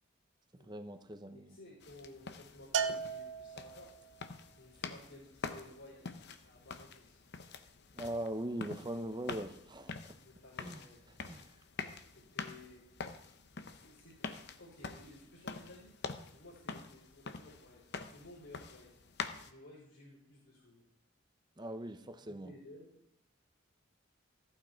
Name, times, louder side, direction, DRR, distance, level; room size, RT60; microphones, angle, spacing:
voice 1, 0.5-1.6 7.9-9.9 10.6-10.8 11.3-11.5 21.6-22.5, right 1 dB, 20° right, 9 dB, 0.8 m, -41 dB
voice 2, 1.3-3.9 4.6-6.1 6.4-7.2 10.2-11.1 12.1-12.8 13.7-14.3 14.6-15.9 16.3-19.0 19.3-20.9 22.2-23.0, left 1 dB, 75° left, -7 dB, 5.6 m, -56 dB
sound 1, 1.8-19.5, left 4 dB, 55° left, 0.8 m, -46 dB
Bell, 2.7-4.1, right 6 dB, 65° right, 0.7 m, -36 dB
14.5 x 8.8 x 4.5 m, 0.77 s
head